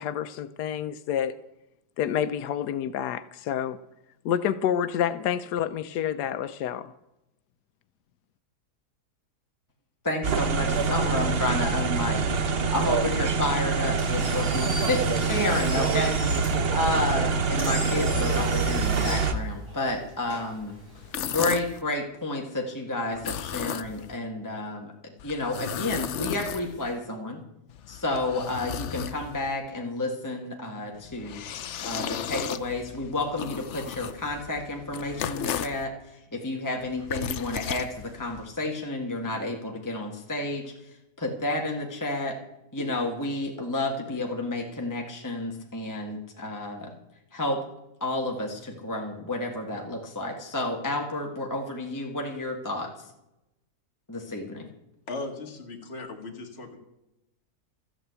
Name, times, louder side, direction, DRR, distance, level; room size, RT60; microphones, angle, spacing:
voice 1, 0.0-1.4 2.0-3.8 4.2-6.9, left 9 dB, 90° left, 11 dB, 1.2 m, -28 dB
voice 2, 10.0-20.7 21.2-27.4 27.9-31.4 31.8-42.4 42.7-46.9 47.3-47.6 48.0-53.1 54.1-54.7, left 2 dB, 10° left, 1 dB, 1.6 m, -31 dB
sound 1, 10.2-19.3, right 4 dB, 45° right, 1.0 m, -25 dB
Engine, 13.8-21.2, right 1 dB, 90° right, 5.9 m, -39 dB
sound 2, 21.0-21.8 23.1-24.2 25.2-27.0 27.7-29.5 30.9-35.8 36.8-38.4, left 9 dB, 60° left, 0.8 m, -35 dB
voice 3, 55.1-56.8, left 2 dB, 40° left, 2 dB, 2.2 m, -37 dB
13.5 x 9.0 x 8.1 m, 0.90 s
omnidirectional pair, 1.7 m